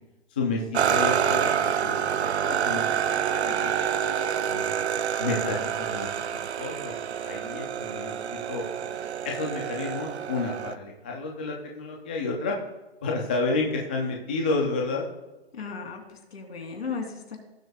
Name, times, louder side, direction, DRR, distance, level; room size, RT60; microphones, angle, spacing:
voice 1, 0.3-3.0 3.3-3.9 4.5-4.8 5.2-6.1 6.6-6.9 7.2-8.6 9.3-12.6 13.0-15.1, left 3 dB, 10° left, 0 dB, 0.3 m, -30 dB
sound 1, 0.7-10.7, right 8 dB, 85° right, 0.6 m, -27 dB
voice 2, 15.5-17.4, left 5 dB, 75° left, 3 dB, 3.0 m, -35 dB
17.5 x 7.6 x 2.3 m, 1.1 s
hypercardioid pair, 145°, 32 cm